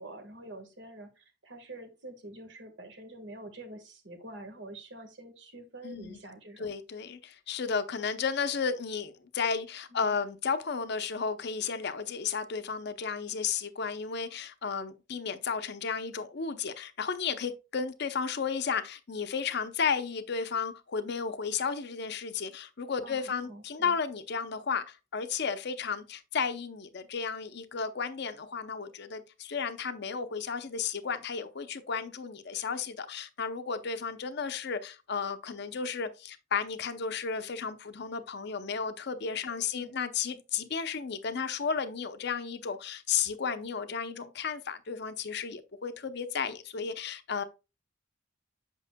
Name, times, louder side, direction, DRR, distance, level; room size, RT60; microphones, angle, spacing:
voice 1, 0.0-6.7 9.9-10.1 23.0-24.0 39.5-39.9, right 1 dB, 65° right, 1.5 m, -47 dB
voice 2, 5.8-6.2 6.6-47.4, left 6 dB, 60° left, 0.6 m, -33 dB
8.3 x 5.9 x 2.2 m
head